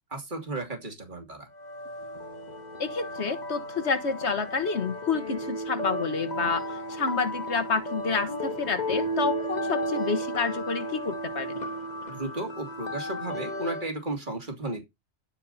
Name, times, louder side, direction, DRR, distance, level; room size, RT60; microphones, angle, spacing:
voice 1, 0.1-1.5 12.1-14.8, right 2 dB, 40° right, 3.1 m, -34 dB
sound 1, 1.5-13.9, equal, 35° left, 1.7 m, -34 dB
voice 2, 2.8-11.6, left 5 dB, 65° left, 1.7 m, -29 dB
12.0 x 7.3 x 4.2 m
omnidirectional pair, 1.2 m